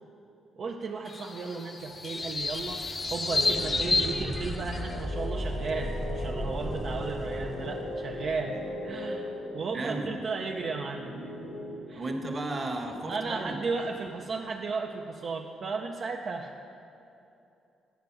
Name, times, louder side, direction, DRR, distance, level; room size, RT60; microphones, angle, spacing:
voice 1, 0.6-2.8 3.1-8.6 8.8-11.2 11.9-12.1 13.1-16.5, right 4 dB, 55° right, 1 dB, 0.5 m, -35 dB
sound 1, 1.0-5.0, left 3 dB, 35° left, 0.6 m, -31 dB
sound 2, 1.9-9.5 12.9-13.0 14.1-14.2, equal, 5° right, 0.5 m, -37 dB
sound 3, 3.3-11.8, left 1 dB, 85° left, 1.5 m, -38 dB
voice 2, 9.7-10.1 12.0-13.6, right 2 dB, 35° right, 3 dB, 1.2 m, -33 dB
10.5 x 5.2 x 5.9 m, 2.8 s
cardioid pair, 90°, 0 cm